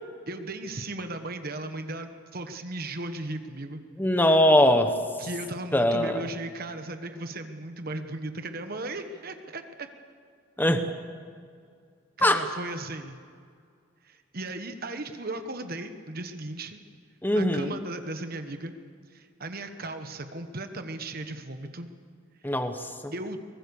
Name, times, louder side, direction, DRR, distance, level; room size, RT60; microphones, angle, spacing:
voice 1, 0.3-3.8 5.2-9.9 12.2-13.2 14.0-16.8 17.3-18.7 19.1-21.9 23.1-23.4, right 2 dB, 50° right, 7 dB, 1.3 m, -36 dB
voice 2, 4.0-5.0 5.7-6.3 10.6-10.9 12.2-12.4 17.2-17.8 22.4-23.1, left 1 dB, 10° left, 7 dB, 1.1 m, -22 dB
23.0 x 20.5 x 7.1 m, 2.2 s
head